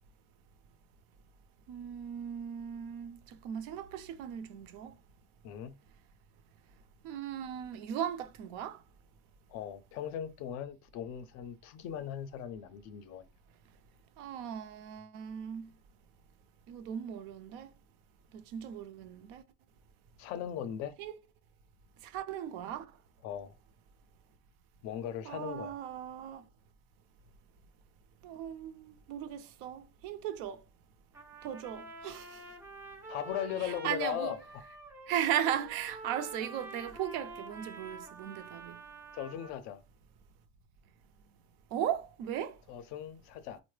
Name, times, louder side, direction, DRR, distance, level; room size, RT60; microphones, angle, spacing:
voice 1, 1.7-5.0 7.0-8.8 14.2-15.7 16.7-17.7 18.3-19.4 21.0-21.1 22.0-22.9 25.2-26.4 28.2-30.6 31.4-32.4 33.6-34.3 35.1-38.8 41.7-42.6, right 10 dB, 65° right, 0.6 m, -37 dB
voice 2, 5.4-5.8 9.5-13.3 20.2-20.9 23.2-23.5 24.8-25.7 33.1-34.4 39.1-39.8 42.7-43.6, left 9 dB, 50° left, 0.5 m, -38 dB
Trumpet, 31.1-39.6, right 3 dB, 5° right, 0.5 m, -48 dB
4.3 x 2.1 x 3.2 m
cardioid pair, 180°, 34 cm